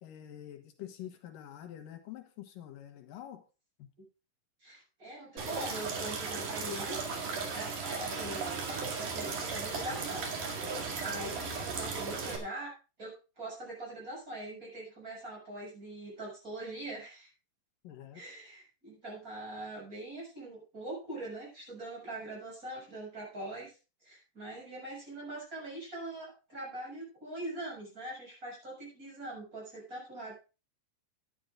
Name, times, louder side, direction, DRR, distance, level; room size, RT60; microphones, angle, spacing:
voice 1, 0.0-3.4 3.8-3.9 17.8-18.2, left 11 dB, 85° left, 6 dB, 2.9 m, -46 dB
voice 2, 4.6-7.2 7.5-10.3 11.0-12.7 13.0-17.3 18.1-23.8 24.0-30.3, right 1 dB, 25° right, -4 dB, 7.6 m, -42 dB
sound 1, 5.4-12.4, right 4 dB, 70° right, 3.7 m, -36 dB
11.5 x 10.5 x 3.8 m, 0.32 s
omnidirectional pair, 3.8 m